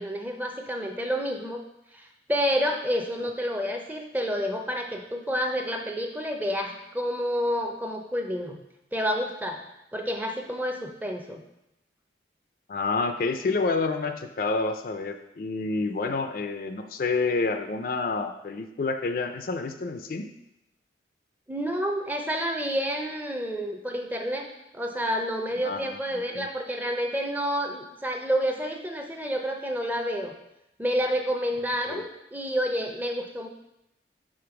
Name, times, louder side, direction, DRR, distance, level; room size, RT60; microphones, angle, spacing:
voice 1, 0.0-1.6 1.9-8.6 8.9-9.6 9.9-11.4 16.0-16.1 21.5-24.5 24.7-30.3 30.8-33.5, equal, 10° right, 3 dB, 0.5 m, -29 dB
voice 2, 12.7-20.3 25.6-26.0 26.3-26.5 31.9-32.0, left 3 dB, 50° left, 7 dB, 0.4 m, -28 dB
5.1 x 3.9 x 5.8 m, 0.87 s
head